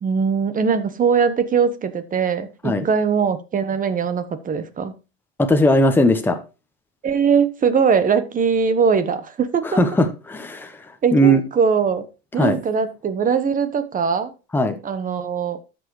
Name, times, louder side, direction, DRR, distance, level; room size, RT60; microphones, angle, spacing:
voice 1, 0.0-4.9 7.0-9.7 11.0-12.0 12.3-14.3 14.8-15.6, right 6 dB, 25° right, 1.1 m, -21 dB
voice 2, 5.4-6.4 9.6-10.8 11.1-11.4 12.4-12.6 14.5-14.8, equal, 5° left, 1.0 m, -18 dB
12.5 x 6.3 x 3.2 m
supercardioid pair, 105°, 31 cm